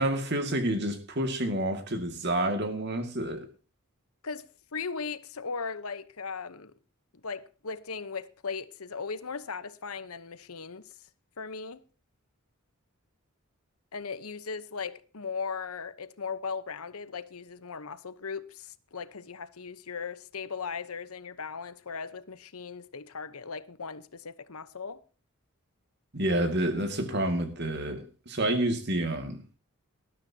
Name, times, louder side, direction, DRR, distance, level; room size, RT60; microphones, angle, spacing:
voice 1, 0.0-3.5 26.1-29.4, right 1 dB, 50° right, 2.2 m, -29 dB
voice 2, 4.7-6.7 7.2-10.9 11.4-11.8 13.9-25.0, left 5 dB, 85° left, 1.0 m, -38 dB
19.5 x 12.5 x 2.9 m
head